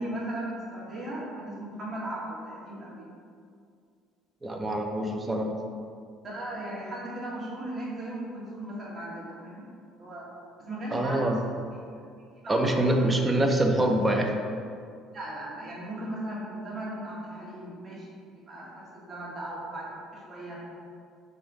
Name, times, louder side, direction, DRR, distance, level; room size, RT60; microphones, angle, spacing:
voice 1, 0.0-3.1 6.2-9.6 10.0-10.3 10.6-11.3 11.7-11.8 12.3-13.1 15.1-18.1 18.5-20.6, right 1 dB, 40° right, -6 dB, 1.3 m, -37 dB
voice 2, 4.4-5.5 10.9-11.4 12.5-14.3, right 1 dB, 20° right, 3 dB, 0.5 m, -25 dB
3.5 x 2.6 x 4.6 m, 2.3 s
hypercardioid pair, 70°, 0 cm